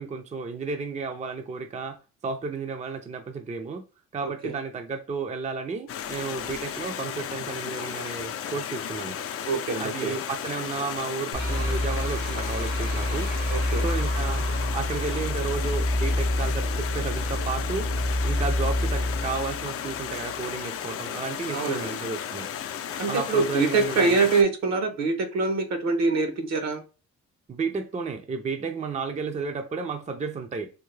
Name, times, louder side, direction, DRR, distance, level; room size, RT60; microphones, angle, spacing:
voice 1, 0.0-3.9 4.1-9.2 9.8-13.3 13.8-14.5 14.7-17.9 18.2-22.5 23.1-24.3 27.5-30.7, right 4 dB, 25° right, 0.4 m, -32 dB
Stream, 5.9-24.4, left 9 dB, 50° left, 0.4 m, -34 dB
voice 2, 9.5-10.2 13.5-13.9 21.5-21.9 23.0-26.8, right 4 dB, 65° right, 0.9 m, -24 dB
sound 1, 11.3-20.4, left 1 dB, 90° right, 1.1 m, -27 dB
3.6 x 2.0 x 3.2 m
cardioid pair, 90°, 30 cm